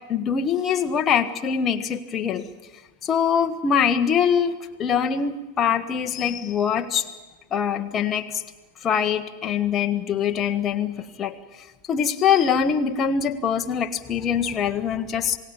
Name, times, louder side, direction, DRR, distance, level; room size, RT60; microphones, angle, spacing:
voice 1, 0.1-2.4 3.0-7.1 7.5-8.4 8.8-11.3 11.9-15.4, left 7 dB, 25° left, 7 dB, 1.5 m, -23 dB
27.5 x 18.5 x 8.9 m, 1.2 s
figure-of-eight pair, 90°, 0 cm